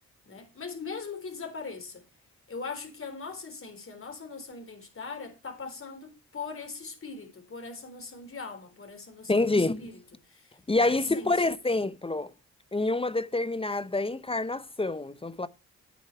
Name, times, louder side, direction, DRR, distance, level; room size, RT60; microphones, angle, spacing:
voice 1, 0.3-2.0 2.5-10.0 10.3-11.3, left 4 dB, 45° left, 3.8 m, -40 dB
voice 2, 9.3-9.9 10.7-12.3 12.7-15.5, left 2 dB, 20° left, 0.7 m, -27 dB
9.5 x 9.4 x 4.5 m
supercardioid pair, 55°, 30 cm